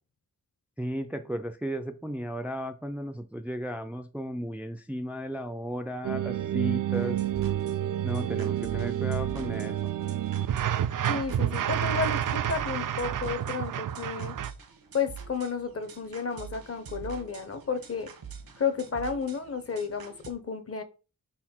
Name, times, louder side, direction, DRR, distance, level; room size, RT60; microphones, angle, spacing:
voice 1, 0.8-7.2 8.0-9.9, equal, 5° right, 0.4 m, -35 dB
sound 1, 6.0-14.5, right 11 dB, 65° right, 0.5 m, -29 dB
sound 2, 6.9-20.3, right 6 dB, 85° right, 1.2 m, -45 dB
voice 2, 11.1-14.3 14.9-18.1 18.6-20.8, left 5 dB, 40° left, 0.9 m, -32 dB
5.4 x 4.2 x 4.4 m
wide cardioid pair, 115°, 34 cm